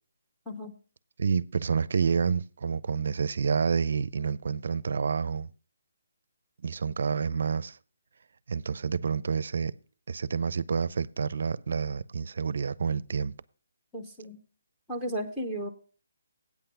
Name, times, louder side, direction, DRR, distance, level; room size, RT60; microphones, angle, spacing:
voice 1, 0.5-0.8 13.9-14.4 14.9-15.7, right 1 dB, ahead, 0.8 m, -34 dB
voice 2, 1.2-5.5 6.6-7.8 8.5-9.8 10.1-13.3, right 6 dB, 60° right, 0.5 m, -28 dB
8.7 x 5.7 x 6.8 m
hypercardioid pair, 165°, 0 cm